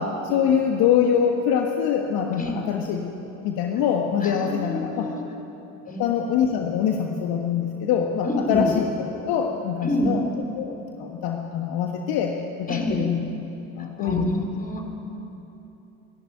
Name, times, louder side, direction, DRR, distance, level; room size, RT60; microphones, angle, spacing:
voice 1, 0.0-5.1 6.0-10.2 10.6-13.2 13.8-14.3, left 8 dB, 55° left, 2 dB, 1.6 m, -24 dB
voice 2, 4.2-5.2 5.9-6.2 8.2-8.7 9.8-10.2 12.7-13.1 14.0-14.9, equal, 20° left, 2 dB, 4.4 m, -28 dB
27.5 x 11.5 x 9.2 m, 3.0 s
figure-of-eight pair, 60°, 43 cm